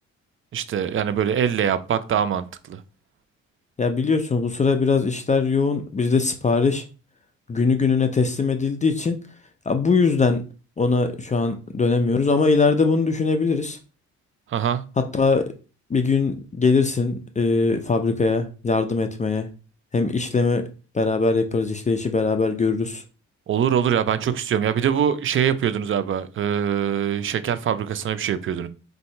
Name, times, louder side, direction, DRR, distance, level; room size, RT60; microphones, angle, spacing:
voice 1, 0.5-2.8 14.5-14.8 23.5-28.7, right 8 dB, 45° right, 0.5 m, -23 dB
voice 2, 3.8-6.8 7.5-9.2 9.7-10.4 10.8-13.8 15.1-15.5 15.9-19.5 19.9-20.6 20.9-23.0, left 4 dB, 25° left, 0.5 m, -21 dB
3.8 x 2.7 x 4.4 m
cardioid pair, 90°, 30 cm